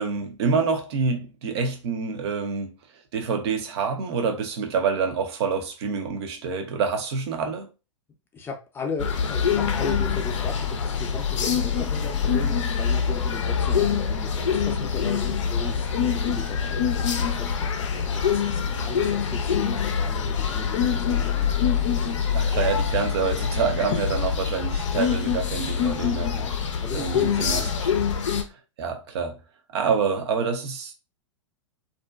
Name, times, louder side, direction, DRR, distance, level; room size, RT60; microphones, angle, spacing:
voice 1, 0.0-2.7 3.1-7.7 22.3-26.3 26.9-27.9 28.8-29.4 29.7-31.0, right 5 dB, 55° right, 0.6 m, -27 dB
voice 2, 8.3-21.5 26.3-26.5 26.8-27.8, left 4 dB, 15° left, 0.5 m, -37 dB
sound 1, 9.0-28.4, left 7 dB, 65° left, 0.5 m, -25 dB
2.5 x 2.1 x 2.3 m
figure-of-eight pair, 105°, 17 cm